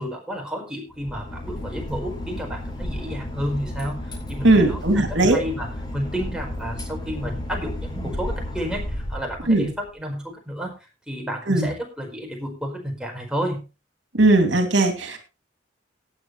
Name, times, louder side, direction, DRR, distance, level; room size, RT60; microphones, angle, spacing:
voice 1, 0.0-10.7 11.1-13.6, equal, 5° right, 0 dB, 4.8 m, -31 dB
Boat Water vehicle / Engine, 0.9-9.9, left 1 dB, 25° left, 5.7 m, -33 dB
voice 2, 4.4-5.4 9.5-9.7 11.5-11.7 14.1-15.2, right 2 dB, 75° right, 5 dB, 2.7 m, -18 dB
18.0 x 9.0 x 3.3 m, 0.30 s
head